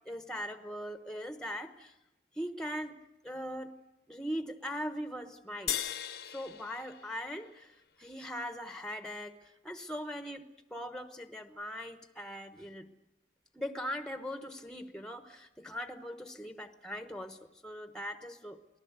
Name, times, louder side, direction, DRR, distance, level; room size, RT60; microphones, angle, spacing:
voice 1, 0.1-1.9 2.4-3.0 3.2-3.7 4.1-5.8 6.2-7.7 8.0-12.9 13.5-18.6, equal, 5° left, 9 dB, 1.0 m, -40 dB
sound 1, 5.7-8.3, left 10 dB, 65° left, 0.9 m, -39 dB
28.5 x 19.0 x 8.1 m, 0.94 s
head